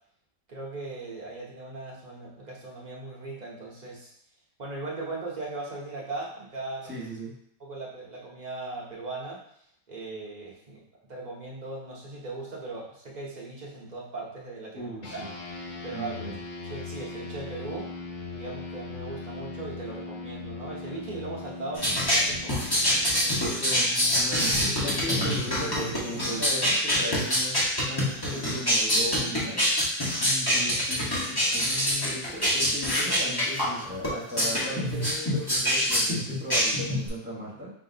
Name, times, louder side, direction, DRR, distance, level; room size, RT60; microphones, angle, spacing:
voice 1, 0.5-4.1 4.6-6.9 7.6-9.4 9.9-10.8 11.1-15.2 15.8-16.3 16.7-17.9 18.3-22.9 23.2-23.6, right 3 dB, 35° right, -5 dB, 0.8 m, -38 dB
voice 2, 6.8-7.3 14.7-15.3 15.9-16.4 23.5-37.7, equal, 10° right, -6 dB, 1.0 m, -37 dB
sound 1, 15.0-24.8, left 4 dB, 60° left, 0.5 m, -40 dB
sound 2, 21.7-37.1, equal, 20° left, 0.9 m, -25 dB
5.5 x 2.7 x 2.7 m, 0.70 s
omnidirectional pair, 1.5 m